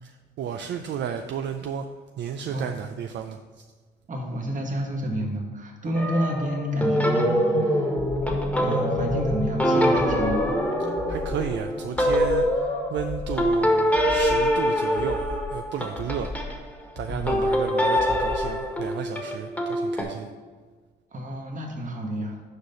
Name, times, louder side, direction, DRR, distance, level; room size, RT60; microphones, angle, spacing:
voice 1, 0.0-1.8 2.2-3.7 10.8-12.4 12.9-16.3 17.0-20.3 22.2-22.3, right 8 dB, 65° right, 6 dB, 0.5 m, -33 dB
voice 2, 4.1-7.9 8.6-10.5 17.1-17.4 21.1-22.4, equal, 40° right, 1 dB, 1.5 m, -29 dB
sound 1, 5.9-16.6 17.3-20.0, equal, 5° left, 1.4 m, -24 dB
sound 2, 8.0-8.6 8.9-9.6 9.9-10.6 11.0-11.6 11.9-12.6 12.9-13.6 13.9-14.6 15.0-15.6 16.0-16.6 17.0-17.6 18.0-18.6, left 2 dB, 55° left, 1.2 m, -36 dB
6.5 x 4.9 x 5.4 m, 1.4 s
cardioid pair, 90°, 20 cm